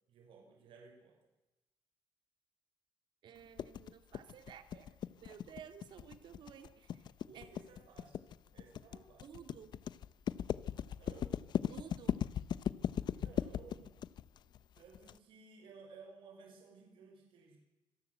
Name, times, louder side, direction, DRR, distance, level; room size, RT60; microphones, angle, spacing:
voice 1, 0.1-1.2 7.3-9.3 11.0-11.3 13.1-14.0 14.7-17.6, right 4 dB, 80° right, 3 dB, 5.7 m, -57 dB
voice 2, 3.2-4.9 5.2-7.1 7.3-7.5 9.2-9.8 11.6-12.2, right 8 dB, 60° right, 9 dB, 2.2 m, -54 dB
sound 1, 3.6-15.1, left 9 dB, 55° left, 0.7 m, -38 dB
25.5 x 18.0 x 8.1 m, 1.0 s
cardioid pair, 170°, 9 cm